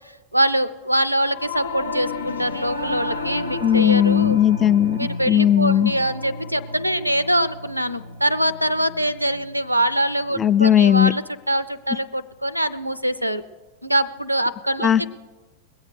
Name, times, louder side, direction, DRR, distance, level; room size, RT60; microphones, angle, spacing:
voice 1, 0.3-4.4 5.0-13.4 13.8-15.1, right 1 dB, 90° right, 0.4 m, -23 dB
Singing / Musical instrument, 1.3-10.8, left 2 dB, 75° left, 0.6 m, -33 dB
voice 2, 3.6-5.0 5.3-5.9 10.4-11.1 14.8-15.0, left 10 dB, 20° left, 0.4 m, -17 dB
21.0 x 8.0 x 6.0 m
figure-of-eight pair, 90°, 0 cm